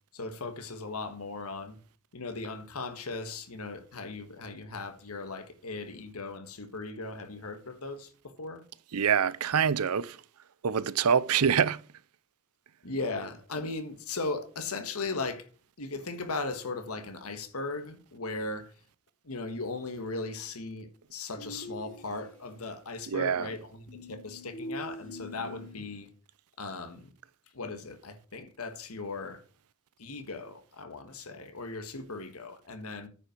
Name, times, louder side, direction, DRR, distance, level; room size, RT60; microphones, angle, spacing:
voice 1, 0.1-1.8 2.1-8.1 8.4-8.6 12.8-15.5 15.8-18.7 19.2-26.1 26.6-27.1 27.5-29.4 30.0-33.1, left 3 dB, 85° left, 1.5 m, -37 dB
voice 2, 8.9-10.2 10.6-11.8 23.1-23.5, right 7 dB, 90° right, 0.6 m, -25 dB
sound 1, 21.4-22.6 23.9-26.1, left 1 dB, 50° left, 3.5 m, -43 dB
9.6 x 5.6 x 6.0 m
head